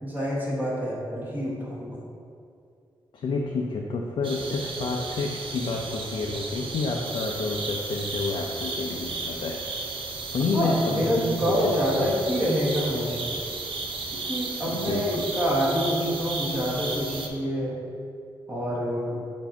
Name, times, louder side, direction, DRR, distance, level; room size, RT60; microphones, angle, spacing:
voice 1, 0.0-2.0 10.5-13.4 14.1-17.8 18.5-19.2, equal, 20° right, -5 dB, 1.2 m, -27 dB
voice 2, 3.1-9.6 10.3-12.1 14.7-15.3, left 3 dB, 80° left, -1 dB, 0.5 m, -29 dB
sound 1, 4.2-17.3, right 3 dB, 80° right, 0.6 m, -34 dB
7.0 x 2.7 x 5.7 m, 2.4 s
wide cardioid pair, 165°, 9 cm